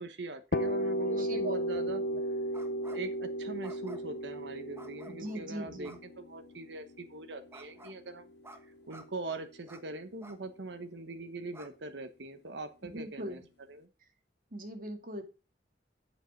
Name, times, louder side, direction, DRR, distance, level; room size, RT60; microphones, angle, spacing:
voice 1, 0.0-2.0 2.9-8.3 8.9-13.4 13.7-13.9, right 2 dB, 75° right, 8 dB, 1.1 m, -42 dB
sound 1, 0.5-8.2, equal, 60° left, 0.8 m, -34 dB
voice 2, 1.1-2.2 5.1-6.0 12.8-13.4 14.5-15.2, equal, 50° right, 5 dB, 2.2 m, -41 dB
sound 2, 2.5-3.1 3.6-4.2 4.8-5.4 5.8-6.0 7.5-8.0 8.4-8.6 8.9-9.0 9.7-9.8 10.2-10.4 10.9-11.0 11.5-11.7, right 1 dB, 15° right, 1.2 m, -52 dB
8.8 x 7.6 x 4.5 m, 0.30 s
head